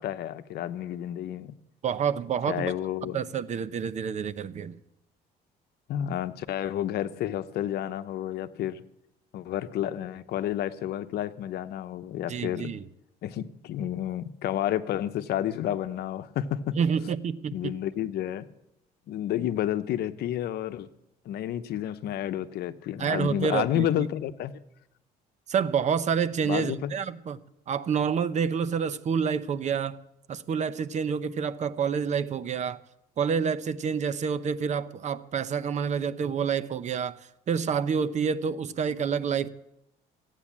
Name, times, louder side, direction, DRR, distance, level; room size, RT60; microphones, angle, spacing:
voice 1, 0.0-1.5 2.5-3.2 5.9-8.8 9.3-12.7 13.2-16.8 17.5-18.5 19.1-20.9 21.2-24.6 26.4-26.9, left 11 dB, 70° left, 0.9 m, -30 dB
voice 2, 1.8-2.7 3.0-4.7 12.3-12.8 16.7-17.8 23.0-24.1 25.5-27.4 27.7-30.0 30.3-32.8 33.2-37.2 37.5-39.5, right 6 dB, 45° right, 0.7 m, -28 dB
15.5 x 9.2 x 7.3 m
cardioid pair, 110°, 17 cm